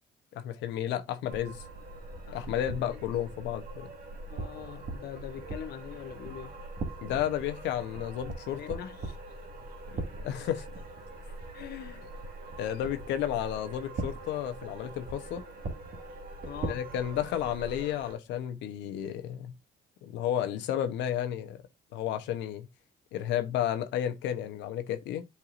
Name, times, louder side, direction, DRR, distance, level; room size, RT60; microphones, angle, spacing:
voice 1, 0.3-1.6 2.3-3.9 7.0-8.8 10.2-10.6 12.6-15.4 16.7-19.5 20.0-21.6 21.9-22.7 23.1-25.2, left 11 dB, 85° left, 0.8 m, -32 dB
sound 1, 1.3-18.1, right 2 dB, 55° right, 1.8 m, -41 dB
voice 2, 2.3-3.0 4.3-6.6 8.5-10.2 11.3-12.1 12.6-12.8 16.4-16.8, left 10 dB, 65° left, 0.7 m, -44 dB
8.7 x 4.6 x 2.5 m
cardioid pair, 85°, 18 cm